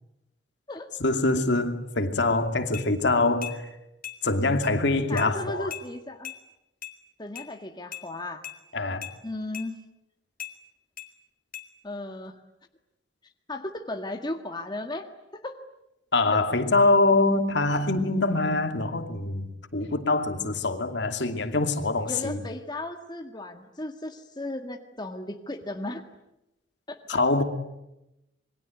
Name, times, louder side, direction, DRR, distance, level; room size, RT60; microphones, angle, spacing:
voice 1, 1.0-3.6 4.2-5.7 8.7-9.1 16.1-22.4 27.1-27.4, left 2 dB, 65° left, 2.6 m, -24 dB
sound 1, 2.7-2.9 3.4-3.6 4.0-4.2 4.6-4.7 5.2-5.3 5.7-5.9 6.2-6.4 6.8-7.0 7.4-7.5 7.9-8.1 8.4-8.6 9.0-9.2 9.5-9.7 10.4-10.5 11.0-11.1 11.5-11.7, left 10 dB, 50° left, 3.0 m, -38 dB
voice 2, 5.1-6.3 7.2-8.4 9.2-9.8 11.8-12.4 13.5-15.6 16.3-16.4 22.0-26.1 26.9-27.2, left 2 dB, 25° left, 1.8 m, -35 dB
27.5 x 23.0 x 9.4 m
head